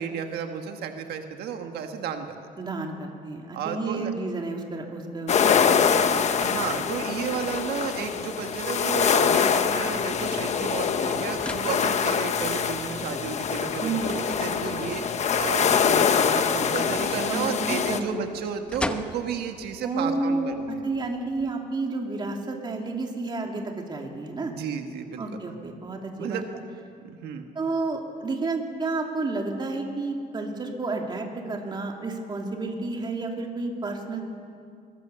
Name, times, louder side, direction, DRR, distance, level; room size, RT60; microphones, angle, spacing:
voice 1, 0.0-2.4 3.5-4.1 6.4-15.0 15.4-20.8 24.4-25.2 26.2-26.4 27.0-27.4, right 7 dB, 85° right, 5 dB, 1.5 m, -33 dB
voice 2, 2.6-6.2 13.8-14.1 17.3-18.2 19.8-24.5 25.2-26.4 27.5-34.2, right 3 dB, 25° right, 1 dB, 2.8 m, -31 dB
sound 1, 5.3-18.0, left 7 dB, 45° left, 1.2 m, -24 dB
sound 2, 10.4-18.5 19.1-19.7, right 3 dB, 65° right, 5.4 m, -44 dB
sound 3, 17.2-21.5, left 1 dB, 5° left, 1.0 m, -42 dB
22.5 x 20.5 x 7.0 m, 2.4 s
cardioid pair, 140°, 16 cm